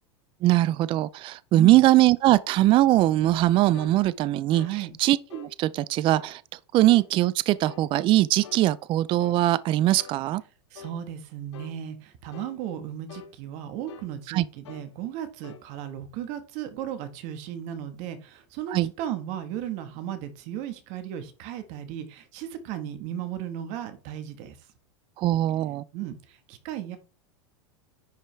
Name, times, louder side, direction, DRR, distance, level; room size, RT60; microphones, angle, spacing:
voice 1, 0.4-10.4 14.3-14.4 18.7-18.9 25.2-25.8, right 15 dB, 35° right, 0.4 m, -21 dB
voice 2, 1.5-1.8 4.5-4.9 10.7-24.6 25.9-27.0, right 10 dB, 55° right, 1.6 m, -35 dB
sound 1, 3.7-4.0 4.5-4.8 5.3-5.5 6.1-6.3 6.9-7.1 7.6-7.9 8.4-8.7 9.2-9.4 10.0-10.2 10.7-11.0 11.5-11.8 12.3-12.6 13.1-13.3 13.9-14.1 14.6-14.9 15.4-15.6, left 8 dB, 80° left, 1.0 m, -45 dB
10.0 x 5.0 x 3.4 m
hypercardioid pair, 105°, 15 cm